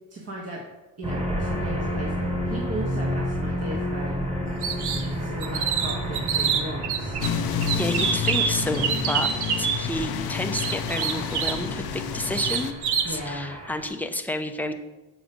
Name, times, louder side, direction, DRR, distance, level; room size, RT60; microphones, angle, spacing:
voice 1, 0.1-0.6 1.0-4.2 5.1-7.2 13.0-13.5, right 1 dB, 35° right, -2 dB, 1.6 m, -36 dB
sound 1, 1.0-13.9, equal, 15° right, 2.0 m, -31 dB
sound 2, 4.6-5.1 5.4-7.3 7.6-9.8 10.5-11.6 12.3-13.1, right 7 dB, 70° right, 1.0 m, -26 dB
sound 3, 7.2-12.7, left 8 dB, 60° left, 0.7 m, -30 dB
voice 2, 7.7-9.3 9.6-12.8 13.1-14.7, left 1 dB, 5° left, 6 dB, 0.8 m, -30 dB
7.1 x 5.0 x 6.4 m, 1.1 s
cardioid pair, 90°, 41 cm